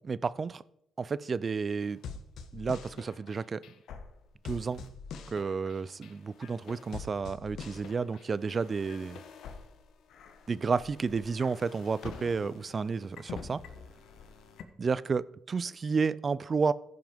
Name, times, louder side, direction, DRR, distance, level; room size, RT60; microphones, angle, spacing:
voice 1, 0.1-0.6 1.0-2.0 2.5-3.6 4.4-4.9 5.3-9.2 10.5-13.6 14.8-16.7, right 5 dB, 40° right, 0.4 m, -31 dB
sound 1, 1.8-14.6, left 5 dB, 75° left, 1.1 m, -46 dB
14.5 x 5.9 x 5.2 m
cardioid pair, 90°, 0 cm